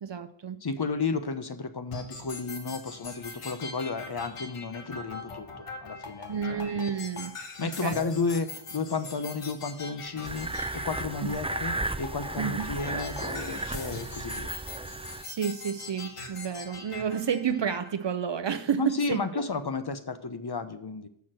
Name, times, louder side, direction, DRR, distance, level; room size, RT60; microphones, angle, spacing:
voice 1, 0.0-0.6 6.3-7.3 7.6-8.1 11.2-11.3 12.4-12.7 15.2-19.5, right 7 dB, 60° right, 11 dB, 0.6 m, -31 dB
voice 2, 0.6-6.7 7.6-10.5 10.7-14.5 18.8-21.1, left 4 dB, 50° left, 9 dB, 1.0 m, -32 dB
sound 1, 1.9-17.9, left 3 dB, 90° left, 1.3 m, -42 dB
sound 2, 10.2-15.2, right 2 dB, 10° right, 0.4 m, -34 dB
7.1 x 6.1 x 7.5 m, 0.68 s
wide cardioid pair, 50°, 50 cm